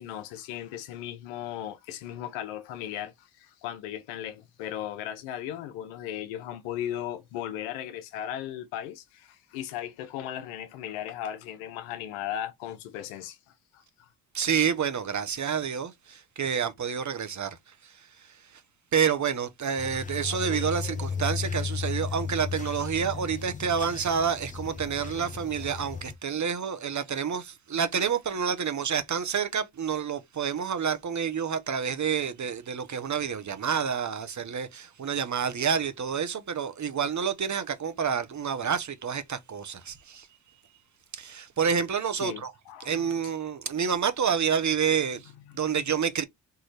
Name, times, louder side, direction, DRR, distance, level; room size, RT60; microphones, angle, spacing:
voice 1, 0.0-13.4 13.7-14.1 23.5-23.7 42.2-43.1 45.5-45.6, left 11 dB, 85° left, 0.8 m, -37 dB
voice 2, 14.3-17.5 17.8-18.6 18.9-40.3 41.1-42.5 42.8-45.3 45.5-46.2, right 7 dB, 40° right, 1.0 m, -28 dB
sound 1, 19.8-26.1, left 6 dB, 15° left, 0.8 m, -35 dB
4.6 x 3.0 x 3.3 m
hypercardioid pair, 55°, 46 cm